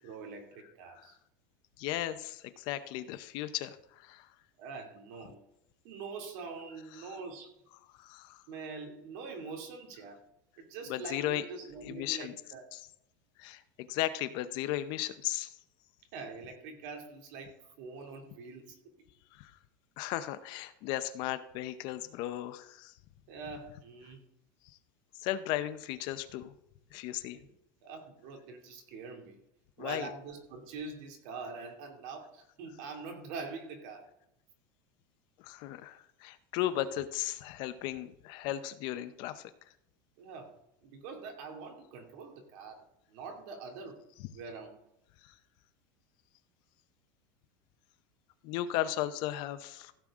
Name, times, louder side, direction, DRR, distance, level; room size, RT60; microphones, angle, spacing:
voice 1, 0.0-1.2 4.6-5.4 5.8-7.5 8.5-10.2 10.6-12.6 16.1-18.8 23.3-24.2 27.4-27.5 27.8-29.4 29.8-34.1 40.2-40.5 40.8-44.0 44.3-44.8, right 4 dB, 55° right, 3 dB, 2.6 m, -44 dB
voice 2, 1.8-4.3 8.0-8.4 10.9-11.4 11.8-12.3 12.7-12.8 13.4-15.5 19.3-19.5 20.0-22.9 25.2-26.5 26.9-27.4 29.8-30.1 35.4-39.5 45.2-45.3 48.4-49.9, left 13 dB, 45° left, 12 dB, 0.7 m, -36 dB
15.5 x 7.6 x 3.7 m, 0.79 s
supercardioid pair, 165°, 10 cm